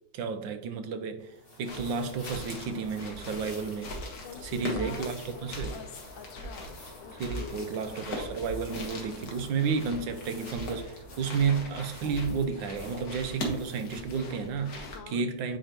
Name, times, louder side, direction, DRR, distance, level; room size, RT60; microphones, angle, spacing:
voice 1, 0.1-1.3 1.6-3.9 4.4-5.7 7.2-15.6, right 5 dB, 80° right, 1.5 m, -31 dB
sound 1, 1.2-14.2, left 1 dB, 40° left, 2.6 m, -53 dB
sound 2, 1.6-15.0, left 1 dB, 55° left, 1.8 m, -40 dB
voice 2, 4.2-7.7 14.9-15.2, left 8 dB, 85° left, 1.5 m, -47 dB
8.9 x 4.9 x 3.0 m
omnidirectional pair, 2.0 m